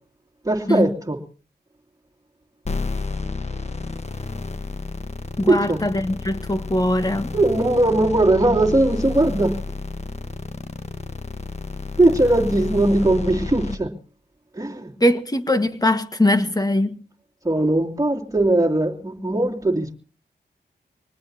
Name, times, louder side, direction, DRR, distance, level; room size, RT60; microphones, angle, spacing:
voice 1, 0.4-1.2 5.5-5.8 7.3-9.6 12.0-13.9 14.5-14.9 17.4-20.0, right 2 dB, 20° right, 2.9 m, -19 dB
sound 1, 2.7-13.8, left 3 dB, 40° left, 1.4 m, -31 dB
voice 2, 5.4-7.3 15.0-17.0, left 1 dB, 20° left, 1.6 m, -21 dB
25.0 x 19.5 x 2.9 m
cardioid pair, 60°, 18 cm